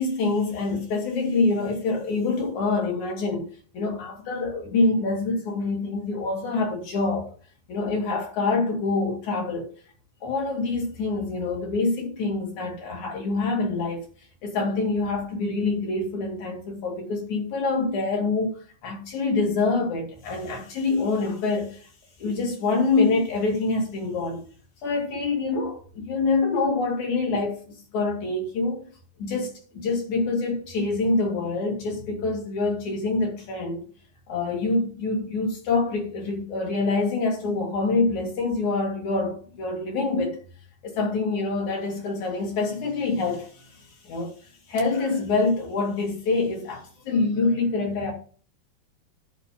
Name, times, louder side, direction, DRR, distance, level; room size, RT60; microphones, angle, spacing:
voice 1, 0.0-3.4 3.7-7.3 7.7-9.7 10.2-14.0 14.4-18.6 18.8-21.8 22.2-24.4 24.8-27.6 27.9-28.9 29.2-33.8 34.3-40.4 40.8-43.6 44.0-44.3 44.7-48.1, left 3 dB, 55° left, 3.5 m, -26 dB
11.5 x 4.5 x 5.1 m
omnidirectional pair, 4.2 m